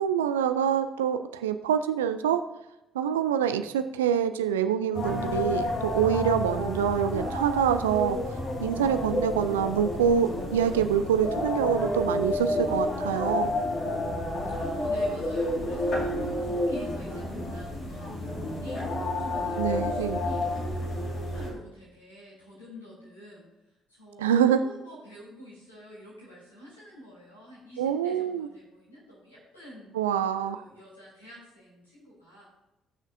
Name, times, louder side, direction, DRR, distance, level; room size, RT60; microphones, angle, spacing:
voice 1, 0.0-2.4 2.9-8.2 8.6-13.5 19.6-20.2 24.2-24.6 27.8-28.5 29.9-30.6, right 8 dB, 80° right, 9 dB, 0.4 m, -25 dB
sound 1, 4.9-21.5, left 1 dB, 55° left, 2.4 m, -30 dB
voice 2, 14.5-23.4 23.9-29.9 30.3-32.5, equal, 85° left, -7 dB, 3.3 m, -47 dB
19.5 x 6.5 x 2.6 m, 0.93 s
figure-of-eight pair, 45°, 0 cm